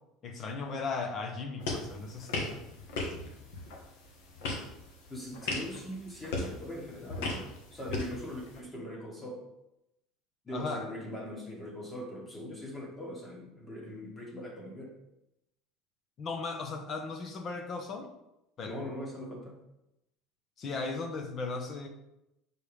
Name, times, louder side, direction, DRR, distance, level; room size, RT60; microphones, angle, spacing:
voice 1, 0.2-2.6 10.5-10.9 16.2-18.1 18.6-18.8 20.6-21.9, left 4 dB, 35° left, 5 dB, 1.0 m, -36 dB
sound 1, 1.6-8.6, left 2 dB, 85° left, 1.5 m, -38 dB
voice 2, 5.1-9.4 10.4-14.9 18.6-19.5, left 1 dB, 15° left, -1 dB, 1.6 m, -41 dB
6.8 x 4.3 x 3.5 m, 0.88 s
cardioid pair, 140°, 0 cm